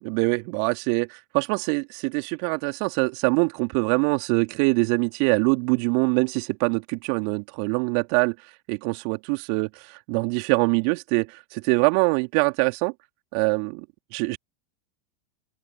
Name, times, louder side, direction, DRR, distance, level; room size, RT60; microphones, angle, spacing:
voice 1, 0.0-8.3 8.7-9.7 10.1-11.3 11.5-12.9 13.3-13.8 14.1-14.4, right 34 dB, 55° right, 3.2 m, -24 dB
open air
hypercardioid pair, 90°, 0 cm